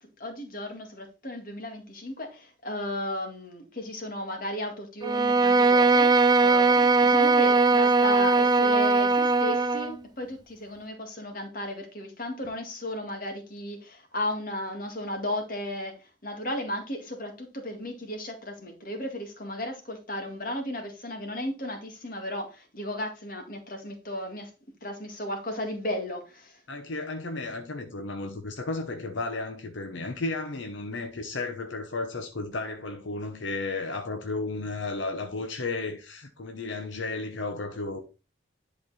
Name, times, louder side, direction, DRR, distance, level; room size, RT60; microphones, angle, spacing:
voice 1, 0.2-15.9 16.2-24.5 24.8-26.6, left 1 dB, 45° left, 2.0 m, -34 dB
Bowed string instrument, 5.0-10.0, right 3 dB, 20° right, 0.3 m, -20 dB
voice 2, 26.7-38.0, left 3 dB, 75° left, 0.9 m, -33 dB
10.5 x 4.4 x 4.2 m
head